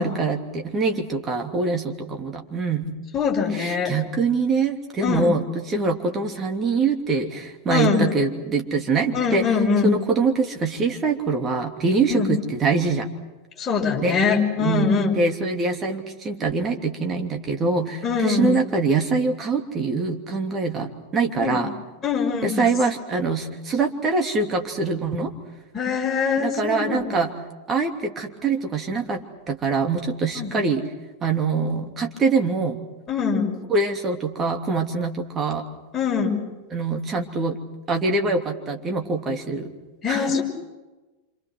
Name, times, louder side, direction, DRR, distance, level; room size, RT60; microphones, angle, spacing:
voice 1, 0.0-2.9 3.5-9.4 9.8-13.1 14.0-14.2 14.6-21.7 22.4-25.3 26.4-27.3 27.7-30.8 31.2-32.8 33.7-35.7 36.7-37.6 37.9-39.7 40.1-40.4, right 4 dB, 25° right, 3 dB, 3.0 m, -24 dB
voice 2, 3.1-4.0 5.0-5.3 7.7-8.0 9.1-10.0 12.1-12.3 13.6-15.2 18.0-18.6 21.4-21.7 22.0-22.7 25.7-27.2 30.4-30.5 33.1-33.6 35.9-36.4 40.0-40.4, left 5 dB, 20° left, -2 dB, 6.2 m, -23 dB
28.5 x 26.5 x 6.2 m, 1.1 s
figure-of-eight pair, 90°, 0 cm